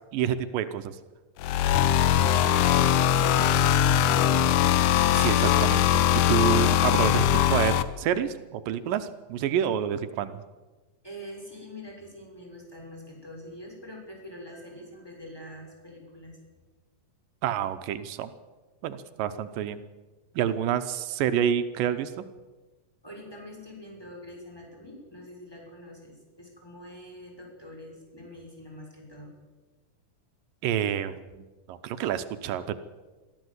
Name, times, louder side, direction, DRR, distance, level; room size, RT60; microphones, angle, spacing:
voice 1, 0.1-1.0 5.1-6.0 6.3-10.4 17.4-18.3 18.8-19.8 20.4-22.2 30.6-31.1 31.7-32.8, right 9 dB, 85° right, 10 dB, 2.5 m, -28 dB
sound 1, 1.4-7.8, left 10 dB, 75° left, 2.3 m, -21 dB
voice 2, 11.0-16.4 23.0-29.3, left 1 dB, 5° left, -1 dB, 6.3 m, -44 dB
23.0 x 14.0 x 8.0 m, 1.2 s
omnidirectional pair, 3.9 m